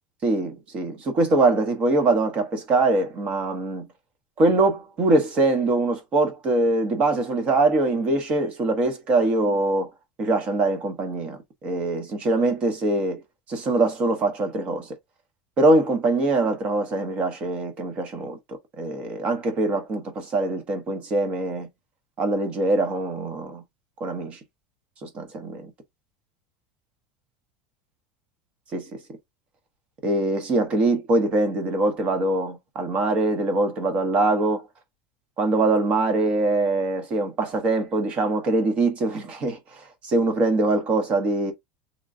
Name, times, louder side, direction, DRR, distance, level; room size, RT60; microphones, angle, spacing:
voice 1, 0.2-3.9 4.4-9.9 10.2-13.2 13.5-14.9 15.6-18.4 18.8-21.7 22.2-23.6 24.0-24.4 25.0-25.7 28.7-29.0 30.0-34.7 35.4-41.5, right 2 dB, 25° right, 0.9 m, -23 dB
3.8 x 2.9 x 2.5 m
supercardioid pair, 175°, 4 cm